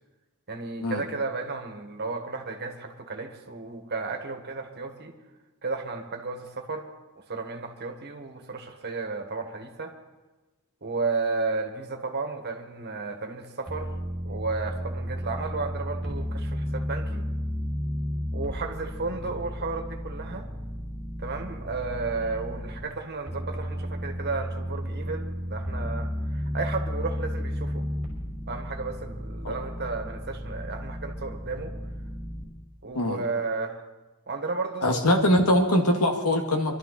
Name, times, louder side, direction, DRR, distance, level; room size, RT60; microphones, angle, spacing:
voice 1, 0.5-5.1 5.6-6.9 7.2-10.0 10.8-13.9 14.2-17.3 18.3-20.5 21.2-27.9 28.5-31.7 32.8-33.8 34.3-35.1, right 4 dB, 50° right, 5 dB, 1.6 m, -33 dB
sound 1, 13.7-22.8 23.3-32.4, equal, ahead, 5.3 m, -33 dB
voice 2, 34.8-36.8, left 1 dB, 85° left, 3 dB, 1.8 m, -22 dB
24.0 x 12.5 x 4.1 m, 1.2 s
head